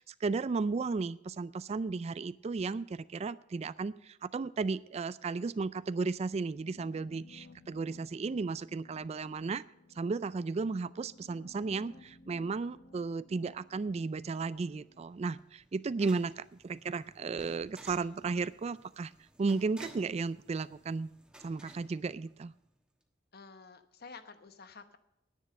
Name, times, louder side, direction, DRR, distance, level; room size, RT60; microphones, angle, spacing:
voice 1, 0.0-9.6 10.0-19.1 19.4-21.1 21.4-22.5, right 4 dB, 35° right, 17 dB, 0.3 m, -34 dB
sound 1, 6.5-15.4, left 2 dB, 80° left, 1.4 m, -58 dB
sound 2, 14.6-22.8, right 1 dB, 5° right, 1.2 m, -57 dB
voice 2, 23.3-25.0, left 4 dB, 55° left, 10 dB, 1.0 m, -51 dB
10.0 x 9.7 x 6.5 m, 0.82 s
head